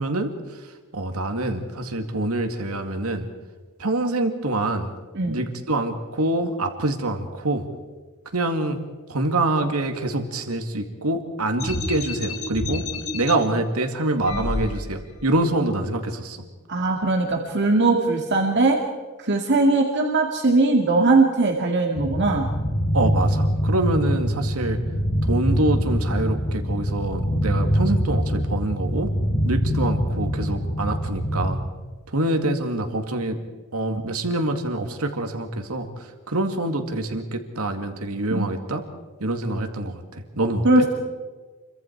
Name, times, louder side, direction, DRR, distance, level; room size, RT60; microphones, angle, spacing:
voice 1, 0.0-3.3 3.8-4.9 5.3-7.6 8.3-8.8 9.1-12.9 13.1-16.4 22.9-24.8 25.2-29.1 29.4-31.6 32.1-33.4 33.7-38.8 39.2-40.8, right 2 dB, 90° right, 6 dB, 2.2 m, -25 dB
sound 1, 11.6-13.3 14.2-15.2, left 2 dB, 80° left, 4.5 m, -29 dB
voice 2, 16.7-18.8 19.2-22.5 38.3-38.5 40.6-40.9, right 3 dB, 55° right, 1 dB, 2.1 m, -20 dB
sound 2, 22.0-31.5, equal, 45° left, 5.5 m, -24 dB
29.0 x 24.0 x 4.6 m, 1.4 s
head